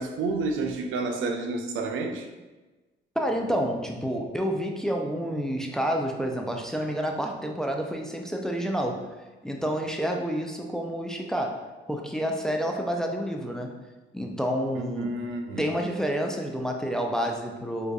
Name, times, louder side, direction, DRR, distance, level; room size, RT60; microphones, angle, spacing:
voice 1, 0.0-2.3 14.7-15.6, right 3 dB, 85° right, 4 dB, 0.5 m, -30 dB
voice 2, 3.2-9.1 9.4-13.7 14.1-15.2 15.6-17.9, equal, 5° left, 2 dB, 0.4 m, -29 dB
4.7 x 2.5 x 2.3 m, 1.2 s
cardioid pair, 90°, 20 cm